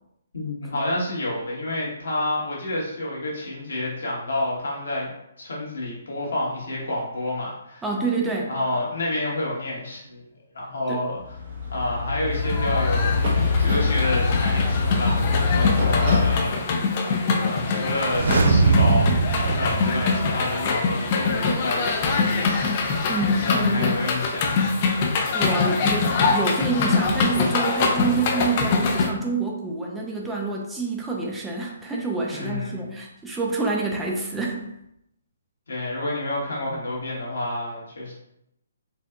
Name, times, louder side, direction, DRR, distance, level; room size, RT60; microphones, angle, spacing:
voice 1, 0.3-5.1 5.4-7.8 8.5-10.2 10.5-11.4 11.7-13.1 13.6-24.7 32.3-32.8 35.7-38.1, left 1 dB, 70° left, -4 dB, 1.4 m, -29 dB
voice 2, 7.8-8.5 10.9-11.0 23.1-24.0 25.3-34.6, right 3 dB, 10° right, -2 dB, 0.5 m, -27 dB
sound 1, 11.2-16.4, left 4 dB, 50° right, 1.1 m, -23 dB
sound 2, 12.3-29.1, left 4 dB, 40° left, 0.5 m, -24 dB
sound 3, 18.0-20.8 21.1-21.2, right 4 dB, 65° right, 0.5 m, -21 dB
4.1 x 2.6 x 2.4 m, 0.79 s
figure-of-eight pair, 135°, 0 cm